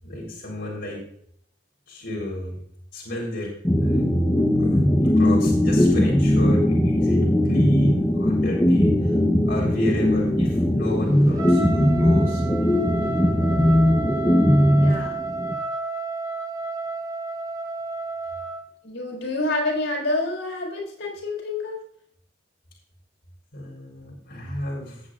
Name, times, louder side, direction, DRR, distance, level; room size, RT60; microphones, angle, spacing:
voice 1, 0.0-1.0 1.9-2.6 2.9-3.5 3.8-4.1 4.6-7.2 7.4-9.2 9.5-12.4 23.5-25.0, left 1 dB, 65° left, -5 dB, 3.8 m, -31 dB
sound 1, 3.6-15.5, left 1 dB, 15° left, 0.9 m, -19 dB
Trumpet, 11.3-18.6, right 3 dB, 20° right, 1.0 m, -31 dB
voice 2, 14.8-15.2 18.8-21.8, left 2 dB, 85° left, -1 dB, 4.4 m, -27 dB
18.0 x 7.9 x 2.4 m, 0.67 s
head